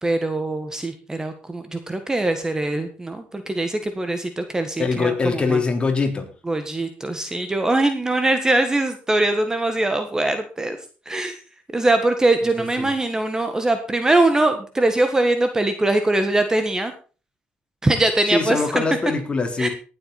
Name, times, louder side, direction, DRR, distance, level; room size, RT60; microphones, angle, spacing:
voice 1, 0.0-5.6 6.5-10.8 11.1-11.4 11.7-16.9 17.8-18.8 19.6-19.7, right 2 dB, 15° right, 7 dB, 1.6 m, -22 dB
voice 2, 4.8-6.3 12.8-12.9 18.3-19.7, left 4 dB, 25° left, 3 dB, 3.6 m, -22 dB
18.5 x 8.1 x 4.3 m, 0.36 s
cardioid pair, 95°, 4 cm